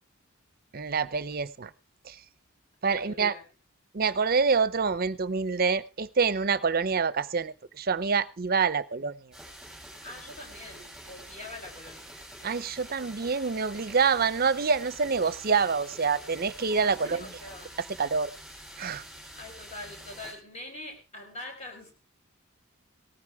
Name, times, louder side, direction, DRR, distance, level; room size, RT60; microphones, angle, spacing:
voice 1, 0.7-1.7 2.0-2.2 2.8-3.3 3.9-9.1 12.4-17.2 18.0-18.3 18.8-19.0, right 5 dB, 45° right, 16 dB, 0.6 m, -26 dB
voice 2, 2.9-3.4 10.0-12.1 16.8-17.7 19.4-21.9, left 1 dB, 35° left, 3 dB, 5.0 m, -44 dB
sound 1, 9.3-20.3, equal, ahead, 7.6 m, -46 dB
17.5 x 14.5 x 3.5 m, 0.31 s
head